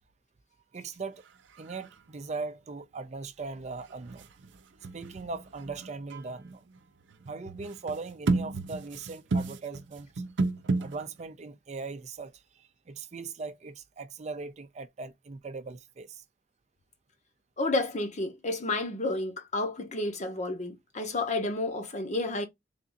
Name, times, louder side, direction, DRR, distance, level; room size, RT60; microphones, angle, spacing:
voice 1, 0.7-1.2 1.6-4.3 4.9-6.7 7.3-10.2 10.8-16.2, right 4 dB, 40° right, 0.4 m, -39 dB
sound 1, 1.3-1.4 1.5-2.0 3.9-11.2, right 3 dB, 90° right, 0.6 m, -33 dB
voice 2, 17.6-22.5, left 2 dB, 40° left, 0.9 m, -31 dB
3.5 x 2.6 x 3.8 m
head